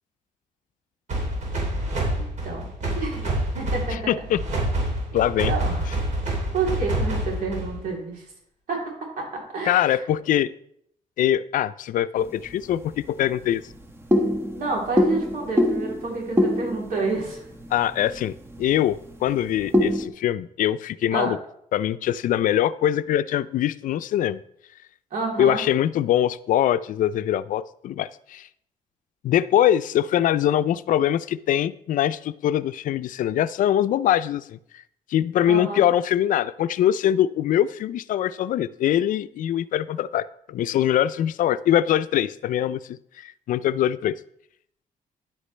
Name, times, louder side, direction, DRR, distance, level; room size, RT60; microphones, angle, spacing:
sound 1, 1.1-7.9, right 1 dB, 55° right, 3.2 m, -27 dB
voice 1, 2.1-3.3 3.5-4.3 5.1-5.8 6.5-8.2 8.7-8.8 9.2-9.9 14.5-17.4 21.1-21.3 25.1-25.6 35.5-35.9, right 4 dB, 75° right, -2 dB, 3.4 m, -29 dB
voice 2, 3.9-4.4 5.1-5.5 9.7-10.5 11.2-13.6 17.7-21.4 21.7-24.4 25.4-28.5 29.2-34.6 35.1-43.0 43.2-44.1, left 11 dB, 70° left, 15 dB, 0.4 m, -23 dB
sound 2, 12.2-20.1, left 1 dB, 15° right, 1.2 m, -26 dB
10.5 x 8.2 x 3.3 m, 0.70 s
cardioid pair, 105°, 14 cm